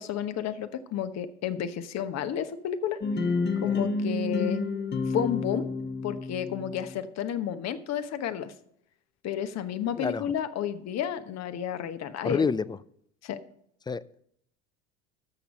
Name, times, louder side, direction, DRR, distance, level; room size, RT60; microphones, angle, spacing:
voice 1, 0.0-3.3 3.6-4.6 5.1-5.7 6.0-8.5 9.2-12.5 13.2-13.4, left 9 dB, 50° left, 11 dB, 1.1 m, -31 dB
sound 1, 3.0-7.0, left 3 dB, 30° left, 1.2 m, -30 dB
voice 2, 12.2-12.8 13.9-14.0, left 5 dB, 15° left, 19 dB, 0.3 m, -28 dB
13.0 x 7.0 x 5.4 m, 0.69 s
hypercardioid pair, 75°, 34 cm